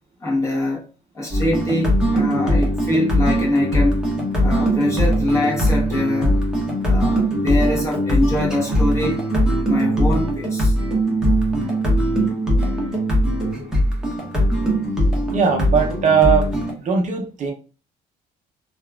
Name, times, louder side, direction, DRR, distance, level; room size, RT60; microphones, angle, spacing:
voice 1, 0.2-0.9 1.1-4.0 4.4-6.4 6.8-9.2 9.7-10.7, left 1 dB, 15° left, 1.1 m, -23 dB
sound 1, 1.3-16.7, equal, 5° right, 0.9 m, -20 dB
voice 2, 15.3-16.5 16.8-17.5, right 6 dB, 45° right, 0.6 m, -19 dB
2.8 x 2.3 x 2.3 m
cardioid pair, 110°, 17 cm